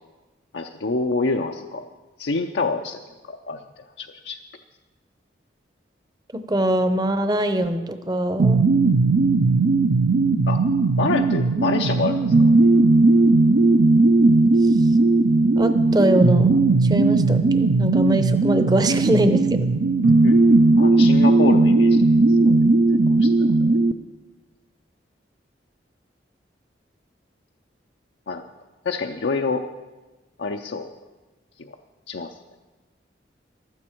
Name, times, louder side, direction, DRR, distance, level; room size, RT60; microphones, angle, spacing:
voice 1, 0.5-1.8 2.2-3.0 3.3-3.6 4.0-4.4 10.5-10.6 11.0-12.5 20.2-20.4 20.8-22.0 22.4-22.6 22.9-23.3 28.3-28.4 28.8-29.6 30.4-30.9 31.6-31.7 32.1-32.3, left 3 dB, 75° left, 3 dB, 0.6 m, -26 dB
voice 2, 6.5-8.7 15.6-19.7, right 1 dB, 20° right, 9 dB, 0.7 m, -22 dB
sound 1, 8.4-23.9, right 3 dB, 65° right, 0.5 m, -17 dB
15.0 x 12.0 x 4.5 m, 1.2 s
head